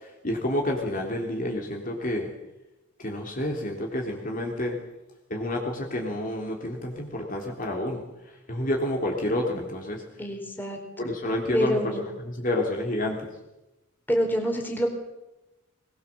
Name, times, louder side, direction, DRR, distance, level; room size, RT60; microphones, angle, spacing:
voice 1, 0.0-2.3 3.0-4.8 5.3-8.0 8.5-10.0 11.0-13.3, left 1 dB, 40° left, 0 dB, 3.6 m, -29 dB
voice 2, 10.2-11.1 11.5-12.0 14.1-14.9, equal, 10° left, 1 dB, 4.3 m, -27 dB
21.5 x 21.5 x 7.5 m, 0.97 s
head